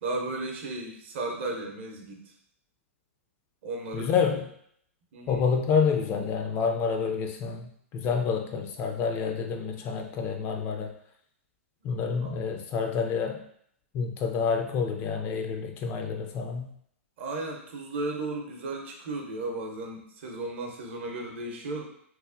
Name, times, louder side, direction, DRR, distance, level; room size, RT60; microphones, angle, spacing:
voice 1, 0.0-2.2 3.6-4.4 5.1-5.5 12.2-12.4 17.2-21.8, right 2 dB, 55° right, 1 dB, 0.7 m, -35 dB
voice 2, 3.9-4.4 5.3-7.7 7.9-10.9 11.8-13.4 13.9-16.7, left 6 dB, 30° left, 4 dB, 0.3 m, -28 dB
3.0 x 2.0 x 2.4 m, 0.67 s
figure-of-eight pair, 110°, 8 cm